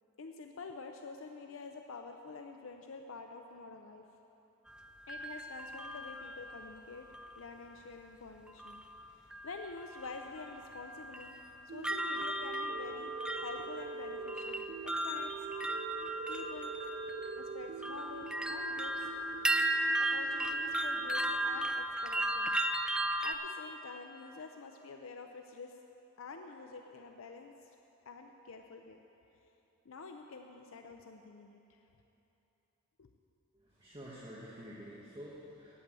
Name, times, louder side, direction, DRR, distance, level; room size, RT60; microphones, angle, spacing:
voice 1, 0.2-4.1 5.1-7.1 7.4-11.3 11.6-13.1 13.4-15.3 16.3-16.7 17.3-19.1 20.0-22.5 23.2-25.8 26.2-27.7 28.1-29.0 29.9-31.8 33.0-33.1, left 4 dB, 70° left, 4 dB, 0.6 m, -48 dB
sound 1, 4.7-7.4 8.6-9.0 9.3-23.3, right 1 dB, 5° right, 0.3 m, -36 dB
sound 2, 11.7-21.7, right 4 dB, 60° right, 0.5 m, -44 dB
voice 2, 33.5-35.7, equal, 25° right, -7 dB, 1.4 m, -49 dB
8.5 x 8.3 x 9.3 m, 2.9 s
head